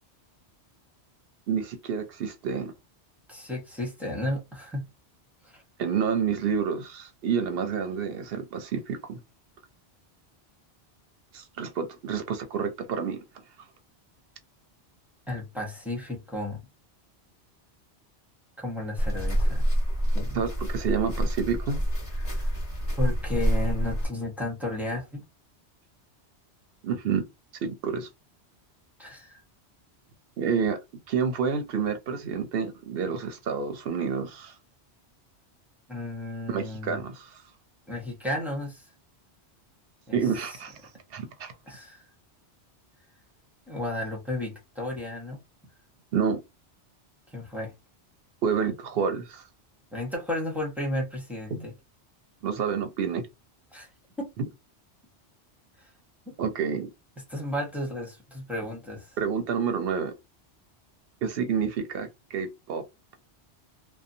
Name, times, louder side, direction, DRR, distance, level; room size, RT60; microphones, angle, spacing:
voice 1, 1.5-2.7 5.8-9.2 11.3-13.2 20.3-21.8 26.8-27.2 27.6-28.1 30.4-30.8 31.1-34.5 36.5-37.4 40.1-41.5 46.1-46.4 48.4-49.4 51.5-51.7 52.4-53.3 56.4-56.9 59.2-60.1 61.2-62.8, right 6 dB, 65° right, 0.7 m, -29 dB
voice 2, 3.3-4.8 5.4-5.6 15.3-16.6 18.6-19.6 20.1-20.4 22.2-22.5 23.0-25.2 29.0-29.4 35.9-37.0 37.9-38.9 40.1-40.2 41.7-42.0 43.7-45.4 47.3-47.7 49.9-51.7 53.7-53.9 54.2-54.3 55.8-55.9 56.3-56.4 57.3-59.2, left 1 dB, ahead, 0.7 m, -33 dB
sound 1, 19.0-24.1, equal, 30° left, 1.0 m, -27 dB
2.7 x 2.1 x 2.5 m
omnidirectional pair, 1.2 m